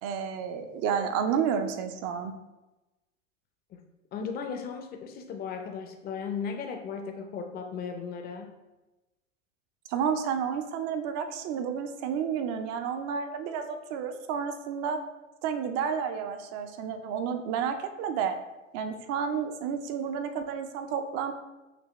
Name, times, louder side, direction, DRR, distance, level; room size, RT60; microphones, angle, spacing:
voice 1, 0.0-2.3 9.9-15.0 15.4-18.4 18.7-21.3, right 7 dB, 40° right, 8 dB, 0.5 m, -31 dB
voice 2, 4.1-8.5, left 6 dB, 25° left, 5 dB, 0.5 m, -36 dB
6.0 x 2.8 x 3.1 m, 1.1 s
hypercardioid pair, 100°, 39 cm